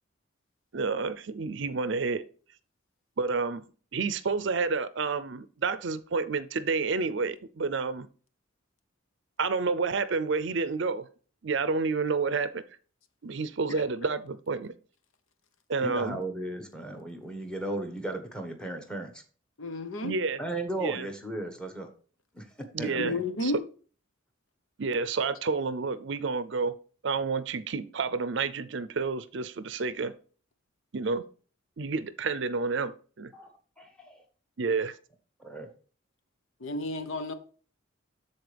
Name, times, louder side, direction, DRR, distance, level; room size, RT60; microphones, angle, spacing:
voice 1, 0.7-2.2 3.2-3.6 3.9-8.1 9.4-11.1 11.4-12.6 13.2-14.7 15.7-16.2 20.0-20.4 20.8-21.1 22.7-23.5 24.8-26.8 27.0-30.1 30.9-31.2 31.8-33.3 34.6-34.9, right 4 dB, 60° right, 0.5 m, -29 dB
voice 2, 15.8-19.2 20.4-21.9 22.3-22.5 22.8-23.2 33.3-33.5 33.8-34.2 35.4-35.7, right 1 dB, 5° left, 1.3 m, -36 dB
voice 3, 19.6-20.1 23.0-23.6 36.6-37.3, left 1 dB, 75° left, 0.9 m, -31 dB
13.0 x 4.3 x 3.4 m
head